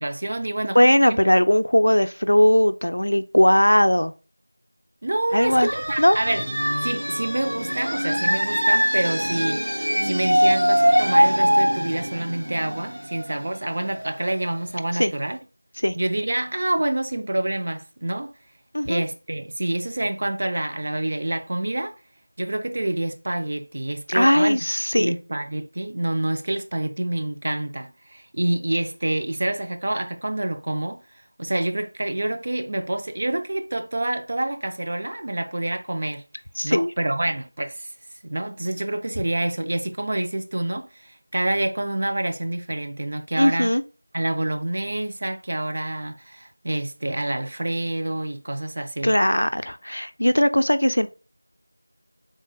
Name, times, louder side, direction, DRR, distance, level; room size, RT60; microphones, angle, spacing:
voice 1, 0.0-0.8 1.1-1.2 5.0-6.4 6.8-9.6 10.0-15.4 15.9-18.3 18.9-22.0 22.4-24.6 25.0-31.0 31.4-36.3 36.6-37.9 38.2-43.7 44.1-49.1, right 1 dB, 25° right, 0.3 m, -27 dB
voice 2, 0.7-4.1 5.3-5.7 6.0-6.2 14.9-15.1 15.8-16.0 18.7-19.0 24.1-25.1 36.6-36.9 43.4-43.8 49.0-51.1, equal, 70° left, 0.4 m, -19 dB
sound 1, 5.4-14.9, equal, 80° right, 1.8 m, -23 dB
3.7 x 2.2 x 3.7 m
figure-of-eight pair, 175°, 0 cm